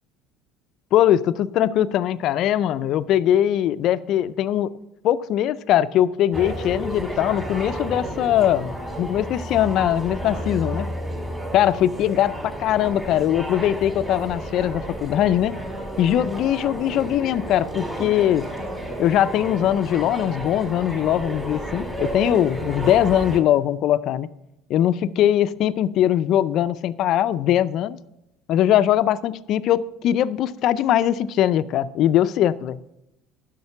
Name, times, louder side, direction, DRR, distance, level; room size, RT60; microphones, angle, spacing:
voice 1, 0.9-4.7 5.0-10.9 11.5-15.6 16.0-18.5 19.0-24.3 24.7-28.0 28.5-32.8, left 11 dB, 60° left, 0.4 m, -21 dB
sound 1, 6.3-23.4, right 1 dB, 15° right, 4.1 m, -32 dB
10.5 x 6.5 x 5.7 m
hypercardioid pair, 70°, 0 cm